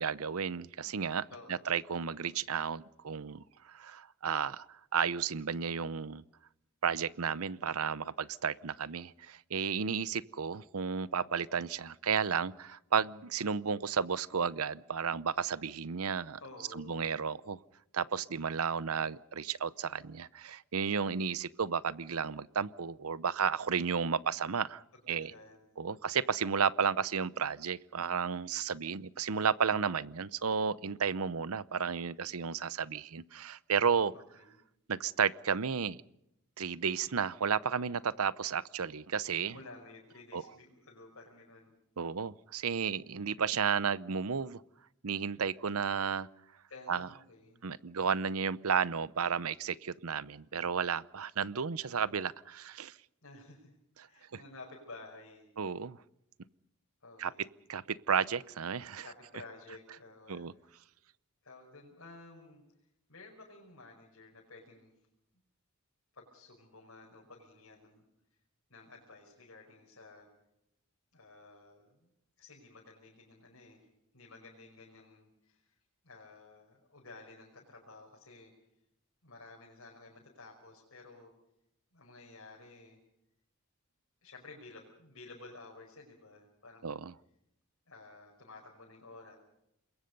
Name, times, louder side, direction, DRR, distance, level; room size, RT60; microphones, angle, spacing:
voice 1, 0.0-6.2 6.8-16.4 16.7-17.6 17.9-25.3 25.8-34.1 34.9-36.0 36.6-39.5 40.3-40.4 42.0-44.6 45.0-46.3 46.9-47.1 47.6-53.0 55.6-56.0 57.2-57.3 57.7-59.0 60.3-60.5 86.8-87.1, right 6 dB, 75° right, 18 dB, 0.7 m, -33 dB
voice 2, 1.3-1.7 16.4-17.1 24.9-25.8 34.1-34.6 39.5-41.8 46.7-47.6 53.2-53.8 54.0-55.5 57.0-57.5 59.0-60.8 61.4-62.6 63.1-65.0 66.1-68.0 68.7-70.3 71.1-72.1 72.4-73.9 74.1-75.8 76.0-78.5 79.2-81.3 81.9-83.0 84.2-87.0 87.9-89.4, left 3 dB, 65° left, -2 dB, 5.4 m, -53 dB
27.5 x 21.5 x 5.4 m, 0.82 s
head